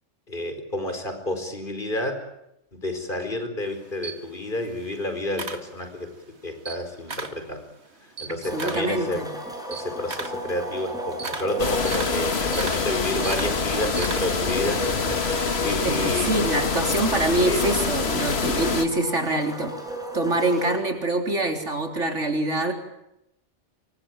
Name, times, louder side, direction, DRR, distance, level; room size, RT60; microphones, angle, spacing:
voice 1, 0.3-2.2 2.7-6.1 6.4-7.7 8.2-9.2 9.7-16.5 17.4-17.6, left 1 dB, 45° left, 7 dB, 4.8 m, -30 dB
Camera, 3.6-6.2 6.5-7.5 7.8-14.5, right 4 dB, 65° right, 2.4 m, -36 dB
voice 2, 8.3-9.3 15.8-19.7 20.1-22.7, right 2 dB, 85° right, 4 dB, 4.3 m, -25 dB
sound 1, 8.4-20.8, equal, 5° right, 6.1 m, -34 dB
sound 2, 11.6-18.9, left 4 dB, 60° left, 1.9 m, -26 dB
26.0 x 23.5 x 9.1 m, 0.84 s
omnidirectional pair, 1.2 m